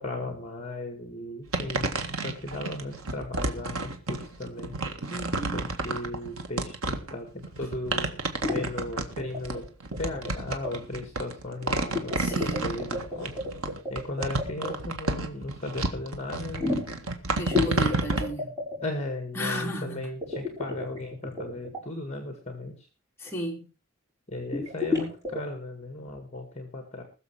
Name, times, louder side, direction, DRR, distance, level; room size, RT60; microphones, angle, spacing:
voice 1, 0.0-4.7 5.5-8.1 8.5-9.6 10.0-13.3 13.9-16.8 18.8-22.9 24.3-27.0, left 2 dB, 30° left, 5 dB, 2.1 m, -36 dB
sound 1, 1.5-18.3, right 2 dB, 90° right, 1.7 m, -31 dB
voice 2, 5.1-5.7 12.2-12.8 17.3-18.5 19.3-20.1 23.2-23.6, equal, 10° left, -2 dB, 3.2 m, -34 dB
sound 2, 8.4-8.7 9.2-9.6 9.9-10.3 10.6-10.7 11.9-14.8 16.5-17.1 17.5-18.8 20.2-21.8 24.5-25.4, left 3 dB, 15° right, 6.5 m, -31 dB
20.5 x 7.0 x 4.9 m, 0.33 s
head